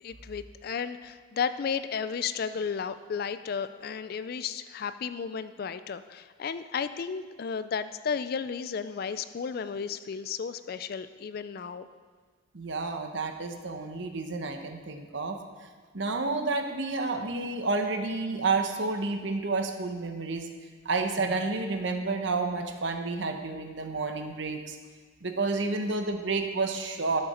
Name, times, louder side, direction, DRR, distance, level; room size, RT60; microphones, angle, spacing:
voice 1, 0.0-11.9, left 6 dB, 50° left, 12 dB, 0.4 m, -33 dB
voice 2, 12.5-15.7 15.9-20.5 20.8-24.8 25.2-27.2, right 3 dB, 60° right, 5 dB, 0.9 m, -30 dB
12.0 x 6.7 x 4.3 m, 1.5 s
head